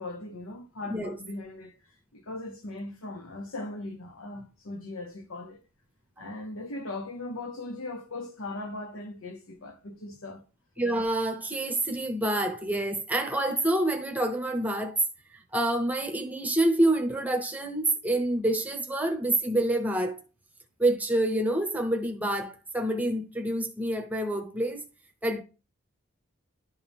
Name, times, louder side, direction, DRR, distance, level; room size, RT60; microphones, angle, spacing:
voice 1, 0.0-1.7 2.1-5.6 6.2-10.4, left 2 dB, 75° left, 0.9 m, -39 dB
voice 2, 0.9-1.2 10.8-15.0 15.3-20.2 20.8-24.8 25.2-25.4, right 1 dB, 5° right, 0.8 m, -27 dB
11.0 x 4.6 x 3.5 m
head